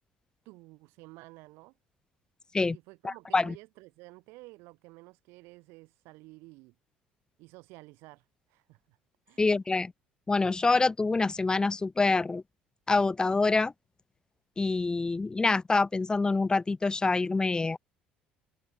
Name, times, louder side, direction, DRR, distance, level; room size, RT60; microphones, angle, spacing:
voice 1, 0.5-1.7 2.7-6.7 7.4-9.0 9.3-9.4, right 23 dB, 70° right, 7.3 m, -52 dB
voice 2, 3.0-3.5 9.4-9.9 10.3-12.4 12.9-13.7 14.6-17.8, left 3 dB, 20° left, 0.5 m, -26 dB
hypercardioid pair, 60°, 4 cm